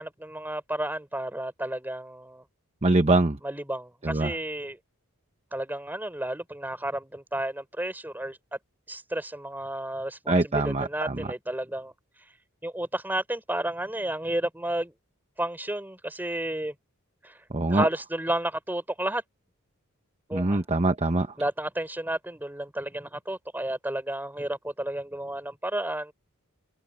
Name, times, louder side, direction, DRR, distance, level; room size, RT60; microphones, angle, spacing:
voice 1, 0.0-2.4 3.4-4.8 5.5-8.4 8.9-11.9 12.6-14.9 15.4-16.7 17.2-17.4 17.7-19.2 20.3-20.6 21.4-26.1, right 1 dB, 10° right, 3.8 m, -32 dB
voice 2, 2.8-3.4 4.0-4.3 10.3-11.2 17.5-17.9 20.3-21.3, right 2 dB, 30° right, 1.0 m, -23 dB
head